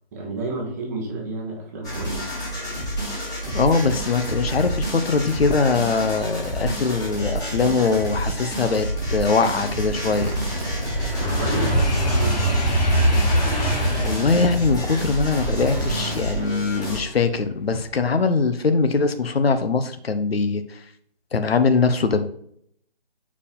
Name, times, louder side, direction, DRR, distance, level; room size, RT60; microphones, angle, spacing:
voice 1, 0.1-2.3 11.4-12.7, right 3 dB, 15° right, -1 dB, 0.9 m, -31 dB
sound 1, 1.8-17.0, right 1 dB, 15° left, 2.3 m, -29 dB
voice 2, 3.5-10.3 14.0-20.8 21.3-22.3, left 4 dB, 75° left, 9 dB, 0.9 m, -22 dB
sound 2, 8.5-17.3 17.7-18.1, equal, 40° left, 1.7 m, -24 dB
sound 3, 9.9-16.8, right 2 dB, 40° right, 0.8 m, -36 dB
4.8 x 4.7 x 5.2 m, 0.68 s
figure-of-eight pair, 160°, 31 cm